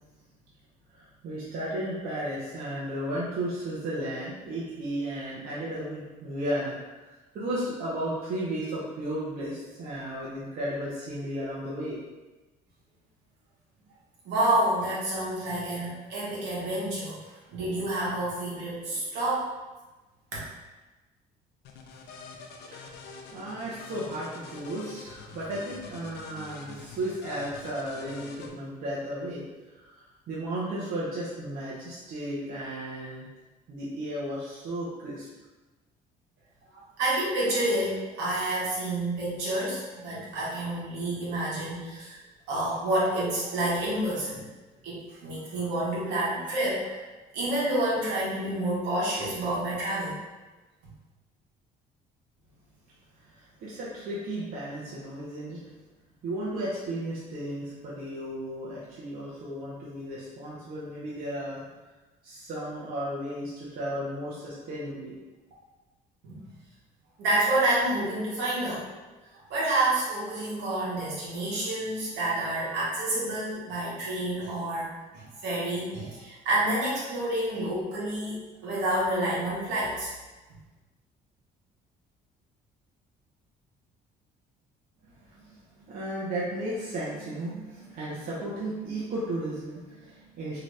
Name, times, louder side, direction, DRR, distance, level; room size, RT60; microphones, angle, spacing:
voice 1, 0.9-12.0 22.6-22.9 23.3-33.3 33.7-35.3 53.1-55.6 56.2-61.6 62.2-65.2 85.0-90.6, right 1 dB, 60° right, -7 dB, 0.8 m, -34 dB
voice 2, 14.2-19.5 20.3-20.4 36.7-42.2 42.5-44.4 44.8-47.0 47.3-50.1 66.2-66.4 67.2-68.8 69.3-74.9 75.1-80.1, right 1 dB, 85° right, -6 dB, 1.2 m, -29 dB
sound 1, 21.6-28.5, left 4 dB, 80° left, 0.5 m, -45 dB
2.8 x 2.5 x 3.2 m, 1.2 s
cardioid pair, 110°, 17 cm